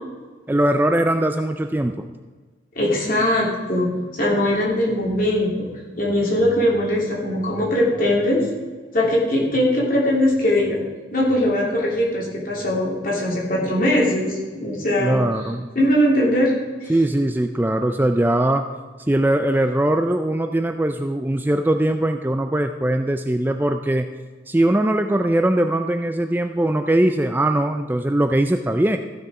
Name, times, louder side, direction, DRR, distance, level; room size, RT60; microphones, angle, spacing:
voice 1, 0.5-2.1 15.0-15.7 16.9-18.7 19.1-24.1 24.5-29.0, right 1 dB, 10° right, 6 dB, 0.4 m, -20 dB
voice 2, 2.7-5.7 6.0-8.5 8.9-10.8 11.1-15.2 15.7-16.5 16.8-16.9, left 1 dB, 45° left, -4 dB, 3.1 m, -20 dB
14.5 x 6.6 x 4.9 m, 1.4 s
head